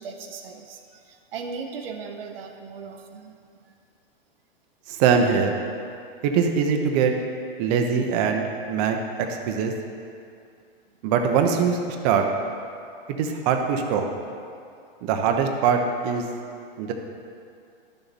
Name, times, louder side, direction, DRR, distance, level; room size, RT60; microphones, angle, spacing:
voice 1, 0.0-3.3, right 5 dB, 70° right, 4 dB, 0.9 m, -37 dB
voice 2, 4.9-5.5 6.2-7.1 7.6-9.0 9.3-9.7 11.0-11.8 12.0-12.2 13.2-14.1 15.0-16.2 16.8-16.9, right 6 dB, 45° right, 4 dB, 0.9 m, -22 dB
11.0 x 6.9 x 4.2 m, 2.4 s
hypercardioid pair, 130°, 30 cm